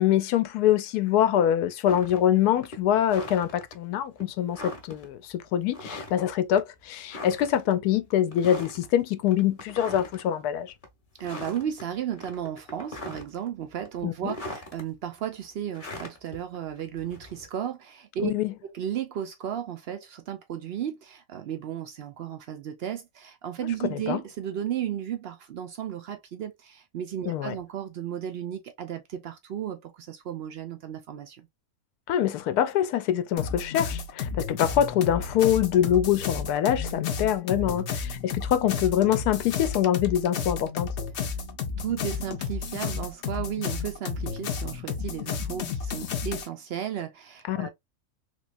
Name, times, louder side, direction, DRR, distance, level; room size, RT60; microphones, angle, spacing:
voice 1, 0.0-10.7 14.0-14.3 18.2-18.5 23.9-24.2 27.3-27.5 32.1-40.9 47.5-47.7, left 10 dB, 85° left, 1.1 m, -24 dB
sound 1, 1.9-2.3 2.6-3.7 4.2-4.3 4.5-5.1 5.7-6.3 6.6-6.7 7.1-7.7 8.3-8.9 9.3-10.3 10.7-10.9 11.2-11.8 12.1-13.5 13.8-14.8 15.7-17.5, left 2 dB, 35° left, 1.1 m, -40 dB
voice 2, 11.2-18.3 18.6-31.5 41.8-47.7, right 9 dB, 80° right, 0.5 m, -34 dB
sound 2, 33.4-46.5, left 6 dB, 60° left, 0.8 m, -32 dB
3.5 x 3.0 x 2.4 m
omnidirectional pair, 1.6 m